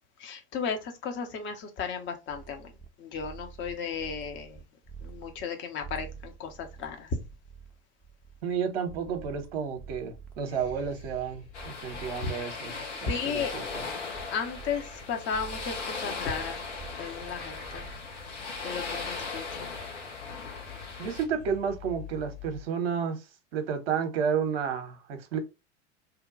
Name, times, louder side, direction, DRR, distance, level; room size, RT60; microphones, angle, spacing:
voice 1, 0.2-2.7 3.0-4.6 5.0-7.2 12.2-12.3 13.1-13.6 14.3-16.6 17.0-17.9 18.6-19.8, left 6 dB, 35° left, 0.8 m, -34 dB
sound 1, 2.3-2.9 3.1-5.4 5.8-12.5 12.8-15.0 15.3-19.0, right 6 dB, 5° left, 0.6 m, -48 dB
voice 2, 8.4-13.9 19.7-19.8 21.0-25.4, right 7 dB, 60° right, 0.8 m, -31 dB
sound 2, 10.5-22.6, left 8 dB, 55° left, 1.8 m, -48 dB
sound 3, 11.5-21.2, left 4 dB, 75° left, 1.1 m, -38 dB
2.8 x 2.2 x 3.7 m
figure-of-eight pair, 80°, 35 cm